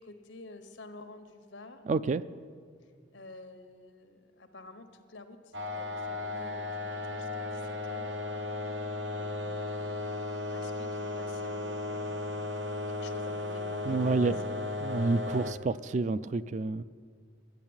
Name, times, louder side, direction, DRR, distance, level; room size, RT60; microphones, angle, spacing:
voice 1, 0.0-1.8 2.8-8.2 9.1-12.3 12.9-14.6 15.0-15.1, left 2 dB, 85° left, 8 dB, 1.2 m, -50 dB
voice 2, 1.9-2.2 13.9-14.4 14.8-16.8, right 3 dB, 40° right, 15 dB, 0.3 m, -29 dB
sound 1, 5.5-15.5, left 2 dB, 90° right, 1.1 m, -35 dB
11.0 x 10.5 x 8.8 m, 2.1 s
head